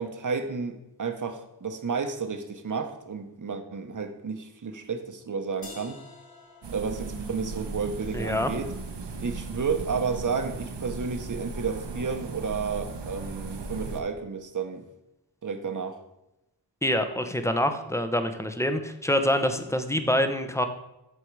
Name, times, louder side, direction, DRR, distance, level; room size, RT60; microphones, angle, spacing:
voice 1, 0.0-6.0 6.7-8.7 9.2-14.8 15.4-16.0, right 5 dB, 45° right, 7 dB, 1.1 m, -31 dB
sound 1, 5.6-11.6, left 3 dB, 55° left, 3.0 m, -53 dB
sound 2, 6.6-14.0, right 4 dB, 75° right, 1.3 m, -37 dB
voice 2, 8.1-8.5 16.8-20.7, left 1 dB, 5° left, 7 dB, 0.9 m, -26 dB
13.5 x 4.7 x 4.8 m, 0.92 s
wide cardioid pair, 110°, 42 cm